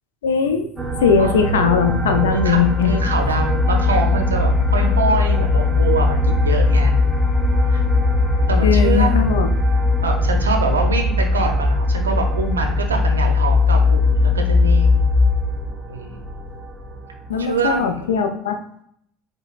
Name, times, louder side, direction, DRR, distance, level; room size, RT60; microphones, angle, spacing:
voice 1, 0.2-0.7 1.0-2.9 8.6-9.5 17.3-18.6, left 6 dB, 80° left, 6 dB, 0.4 m, -19 dB
sound 1, 0.8-15.7, left 4 dB, 20° left, 0.7 m, -19 dB
sound 2, 0.8-18.2, right 3 dB, 20° right, 0.7 m, -28 dB
voice 2, 2.3-6.9 7.7-7.8 8.2-9.2 10.0-15.1 15.9-16.3 17.4-18.0, right 4 dB, 85° right, 3 dB, 0.5 m, -25 dB
4.7 x 2.2 x 2.4 m, 0.69 s
hypercardioid pair, 65°, 0 cm